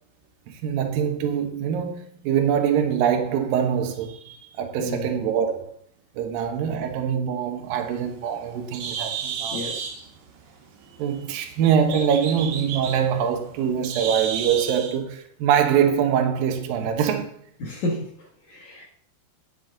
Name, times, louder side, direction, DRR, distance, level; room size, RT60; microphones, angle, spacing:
voice 1, 0.5-5.8 6.2-9.7 11.0-17.4, right 8 dB, 90° right, 2.0 m, -24 dB
voice 2, 4.8-5.1 9.5-10.1 17.6-18.8, left 2 dB, 75° left, 1.6 m, -32 dB
Bird, 7.7-15.0, right 7 dB, 70° right, 3.3 m, -33 dB
10.0 x 8.9 x 3.9 m
omnidirectional pair, 5.9 m